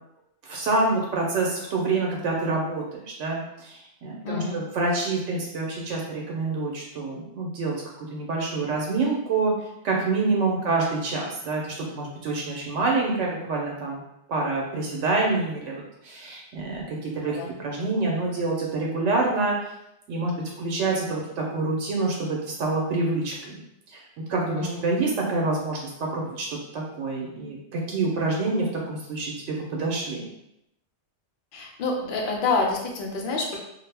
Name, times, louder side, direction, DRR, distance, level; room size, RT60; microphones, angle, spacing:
voice 1, 0.4-9.5 9.8-14.0 14.3-19.6 20.1-23.6 23.9-24.0 24.3-30.2, right 3 dB, 85° right, -1 dB, 0.9 m, -27 dB
voice 2, 4.2-4.6 17.3-17.5 24.5-24.9 31.5-33.6, left 3 dB, 60° left, 0 dB, 0.6 m, -27 dB
2.3 x 2.0 x 3.2 m, 0.82 s
omnidirectional pair, 1.2 m